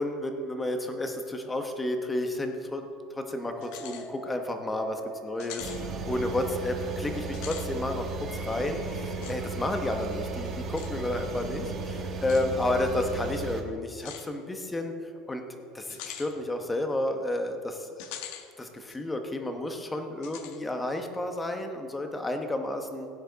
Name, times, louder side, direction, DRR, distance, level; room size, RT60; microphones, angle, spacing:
voice 1, 0.0-2.8 3.1-14.9 15.3-15.4 15.7-18.0 18.6-23.1, left 1 dB, 10° left, 5 dB, 1.0 m, -31 dB
sound 1, 3.4-17.4, right 2 dB, 5° right, 2.2 m, -50 dB
sound 2, 3.6-4.1 4.5-4.6 5.4-5.8 7.2-7.7 9.2-9.4 10.8-10.9 12.2-12.5 14.0-14.3 15.9-16.3 18.0-18.5 18.9-19.0 20.2-20.6, left 9 dB, 70° left, 1.1 m, -42 dB
sound 3, 5.6-13.6, right 4 dB, 35° right, 1.3 m, -35 dB
16.5 x 9.2 x 4.0 m, 2.4 s
cardioid pair, 150°, 0 cm